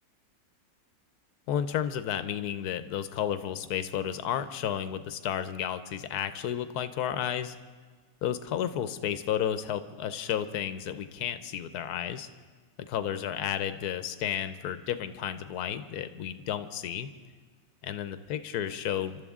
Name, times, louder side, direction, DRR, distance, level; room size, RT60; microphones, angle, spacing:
voice 1, 1.5-7.6 8.2-12.3 12.9-17.1 17.8-19.2, left 9 dB, 90° left, 11 dB, 1.2 m, -32 dB
29.0 x 12.5 x 3.6 m, 1.5 s
omnidirectional pair, 1.6 m